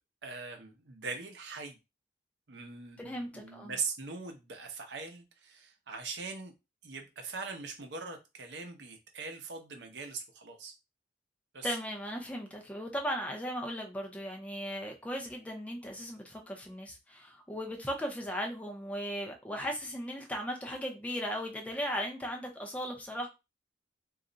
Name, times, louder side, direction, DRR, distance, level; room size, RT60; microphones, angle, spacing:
voice 1, 0.2-1.8 2.5-6.5 6.8-10.7 11.5-11.8, right 4 dB, 70° right, 0.7 m, -41 dB
voice 2, 3.0-3.8 11.6-23.3, equal, 10° left, 0.5 m, -37 dB
2.4 x 2.1 x 3.7 m
head